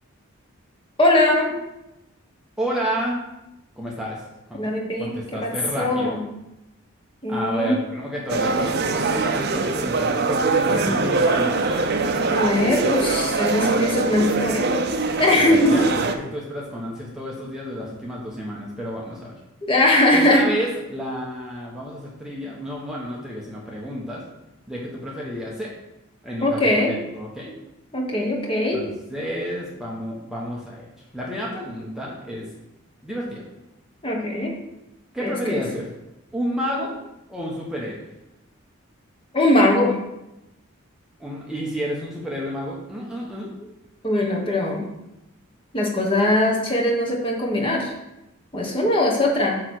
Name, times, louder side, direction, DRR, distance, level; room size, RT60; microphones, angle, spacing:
voice 1, 1.0-1.5 4.5-5.1 5.4-5.5 5.8-6.2 7.2-7.8 12.3-14.8 15.2-15.8 19.6-20.4 26.4-26.9 27.9-28.8 34.0-34.5 35.2-35.6 39.3-40.0 44.0-44.9 45.7-47.9 48.5-49.6, left 1 dB, 25° left, -1 dB, 1.2 m, -20 dB
voice 2, 2.6-3.2 3.8-4.2 4.5-4.7 5.0-6.1 7.3-11.8 15.4-19.4 20.1-24.2 24.7-25.7 26.2-27.6 28.7-30.9 31.1-32.4 33.0-33.5 35.1-35.9 36.3-37.0 37.3-38.1 41.2-43.5, equal, 5° right, -5 dB, 1.0 m, -30 dB
sound 1, 8.3-16.1, right 3 dB, 45° right, 0.5 m, -23 dB
8.4 x 3.2 x 6.3 m, 0.93 s
head